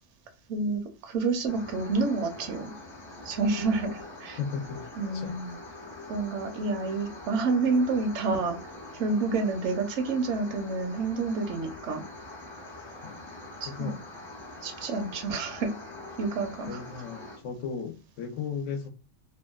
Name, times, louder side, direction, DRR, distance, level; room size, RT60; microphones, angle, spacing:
voice 1, 0.5-2.7 3.2-4.4 5.0-5.6 6.1-8.6 8.9-12.1 13.6-14.0 14.6-15.7 16.2-16.8, right 3 dB, 75° right, 0.9 m, -29 dB
sound 1, 1.5-17.4, left 2 dB, 35° left, 0.4 m, -44 dB
voice 2, 4.4-4.9 5.1-5.3 9.1-9.2 13.0-13.2 13.7-14.0 16.7-18.9, left 6 dB, 85° left, 0.9 m, -35 dB
2.7 x 2.1 x 2.3 m
omnidirectional pair, 1.3 m